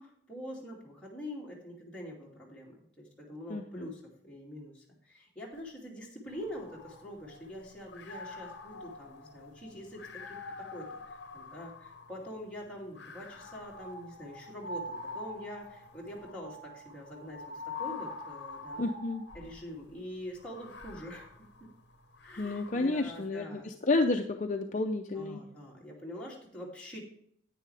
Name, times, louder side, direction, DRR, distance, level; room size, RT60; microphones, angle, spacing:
voice 1, 0.0-18.9 19.3-21.5 22.2-23.7 25.1-27.0, equal, 5° left, -5 dB, 2.6 m, -45 dB
voice 2, 3.5-3.9 18.8-19.2 22.4-25.4, left 2 dB, 40° left, 4 dB, 0.5 m, -31 dB
sound 1, 6.3-7.5 7.9-12.3 13.0-19.6 20.4-23.0, left 2 dB, 60° left, 0.9 m, -45 dB
10.5 x 9.2 x 3.4 m, 0.67 s
head